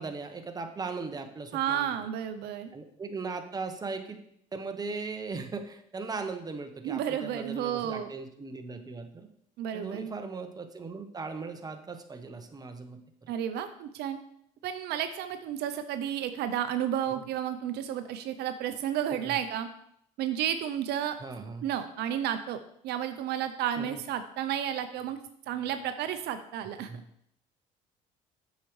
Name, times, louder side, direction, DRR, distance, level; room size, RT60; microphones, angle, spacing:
voice 1, 0.0-1.9 2.7-4.2 4.5-9.3 9.7-13.3 17.1-17.2 19.1-19.3 21.2-21.6 23.8-24.0 26.7-27.0, right 4 dB, 20° right, 6 dB, 0.9 m, -38 dB
voice 2, 1.5-2.7 6.8-8.1 9.6-10.1 13.3-14.2 14.6-19.7 20.2-21.2 21.6-22.6 22.8-25.2 25.5-26.9, right 10 dB, 70° right, 9 dB, 0.5 m, -32 dB
8.1 x 6.4 x 3.1 m, 0.72 s
supercardioid pair, 90°, 17 cm